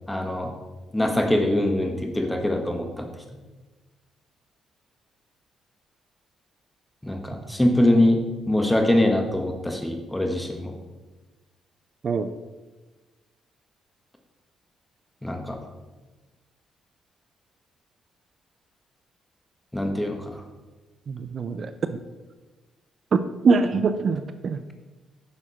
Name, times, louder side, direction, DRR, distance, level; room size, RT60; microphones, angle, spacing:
voice 1, 0.1-0.5 0.9-3.1 7.0-10.7 15.2-15.6 19.7-20.4, left 1 dB, 10° left, 3 dB, 1.4 m, -23 dB
voice 2, 21.1-22.0 23.1-24.6, right 4 dB, 50° right, 10 dB, 0.5 m, -23 dB
9.5 x 6.3 x 4.3 m, 1.2 s
cardioid pair, 90°, 0 cm